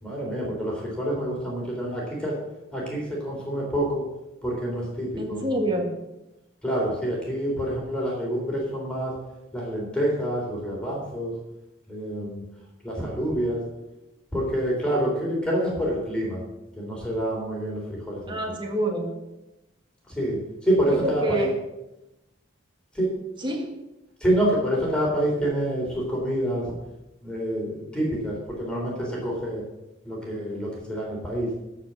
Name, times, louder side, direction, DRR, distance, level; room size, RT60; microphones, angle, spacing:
voice 1, 0.0-2.4 2.7-4.0 4.4-5.6 6.6-9.1 9.5-11.3 11.9-12.4 12.8-13.6 14.3-16.4 16.8-18.3 20.1-21.5 22.9-23.1 24.2-26.7 27.2-29.6 30.0-31.5, right 1 dB, 5° left, -3 dB, 3.5 m, -27 dB
voice 2, 5.2-5.9 18.3-19.2 21.0-21.5 23.4-23.7, right 1 dB, 25° right, 2 dB, 1.6 m, -27 dB
13.5 x 4.9 x 7.4 m, 0.96 s
head